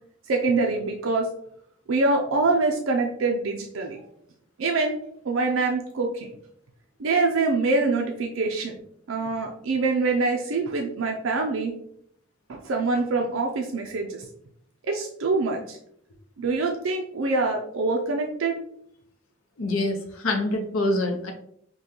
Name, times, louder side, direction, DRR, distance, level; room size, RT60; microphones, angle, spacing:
voice 1, 0.3-1.3 1.9-4.0 4.6-5.0 5.2-6.3 7.0-8.7 9.1-11.7 12.5-14.3 14.9-15.8 16.4-18.6, right 3 dB, 80° right, 1 dB, 0.5 m, -25 dB
voice 2, 19.6-21.3, left 2 dB, 90° left, 3 dB, 0.7 m, -25 dB
5.3 x 2.2 x 3.0 m, 0.68 s
head